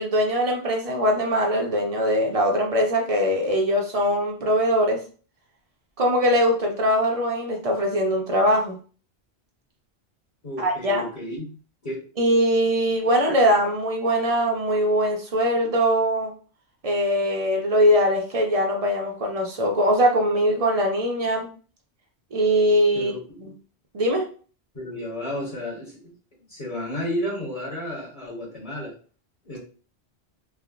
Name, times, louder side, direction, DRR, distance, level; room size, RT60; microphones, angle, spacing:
voice 1, 0.0-5.0 6.0-8.8 10.6-11.0 12.2-16.3 16.8-21.5 22.3-23.1 23.9-24.3, equal, 40° right, 1 dB, 0.6 m, -21 dB
voice 2, 10.4-11.6 11.8-12.0 22.9-23.5 24.7-26.0 26.3-28.9 29.4-29.6, left 1 dB, 40° left, -6 dB, 1.1 m, -32 dB
3.4 x 2.1 x 2.4 m, 0.40 s
omnidirectional pair, 1.1 m